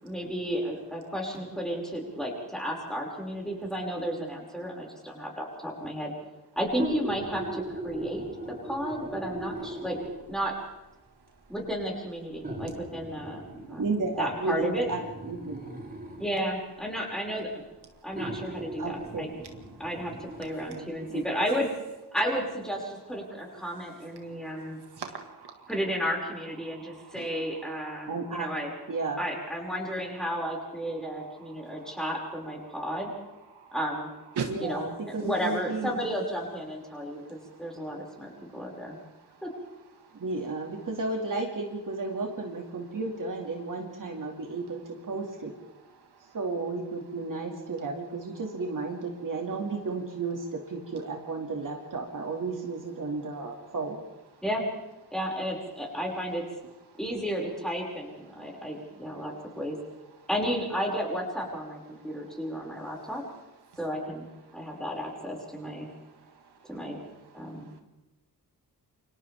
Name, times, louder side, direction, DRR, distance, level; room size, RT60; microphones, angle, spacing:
voice 1, 0.0-6.1 6.6-8.2 8.5-10.0 10.3-10.6 11.5-13.4 13.7-13.8 14.2-14.9 16.2-17.5 18.0-19.3 19.8-21.7 22.1-24.8 25.7-28.7 29.2-33.1 33.7-34.1 34.6-39.0 39.4-39.5 54.4-54.6 55.1-56.4 57.0-59.8 60.3-63.2 63.8-64.3 64.5-65.9 66.7-67.0 67.3-67.7, equal, ahead, -2 dB, 6.0 m, -33 dB
sound 1, 6.7-10.4 11.3-11.4 12.4-16.4 17.4-17.5 18.1-20.8 21.2-21.3, right 1 dB, 20° right, 7.0 m, -39 dB
voice 2, 13.8-15.0 15.3-15.6 18.8-19.3 20.7-21.2 28.1-28.5 28.9-29.2 34.5-36.0 40.1-45.5 46.3-54.0, right 3 dB, 50° right, 1 dB, 2.4 m, -33 dB
voice 3, 24.8-25.7 26.6-27.3 28.0-28.1 31.5-32.0 33.5-33.7 34.4-34.5 37.1-37.5 64.5-64.8 65.9-66.0, right 6 dB, 75° right, 4 dB, 2.0 m, -40 dB
29.0 x 25.0 x 3.6 m, 0.98 s
wide cardioid pair, 140°, 40 cm